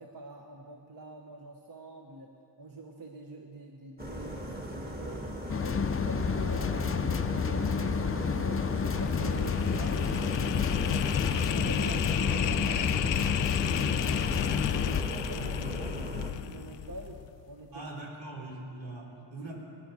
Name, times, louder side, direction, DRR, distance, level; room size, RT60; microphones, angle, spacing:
voice 1, 0.0-2.3 2.6-5.2 5.6-8.7 9.0-10.8 11.5-12.9 14.4-16.1 16.4-17.9, right 3 dB, 50° right, 2 dB, 1.1 m, -46 dB
sound 1, 4.0-16.3, equal, 20° right, 1.6 m, -38 dB
sound 2, 5.5-15.0, left 6 dB, 30° left, 0.5 m, -30 dB
sound 3, 8.3-17.4, left 11 dB, 80° left, 0.5 m, -33 dB
voice 2, 17.7-19.5, right 2 dB, 80° right, -3 dB, 3.7 m, -41 dB
20.0 x 10.5 x 6.9 m, 2.8 s
wide cardioid pair, 135°, 43 cm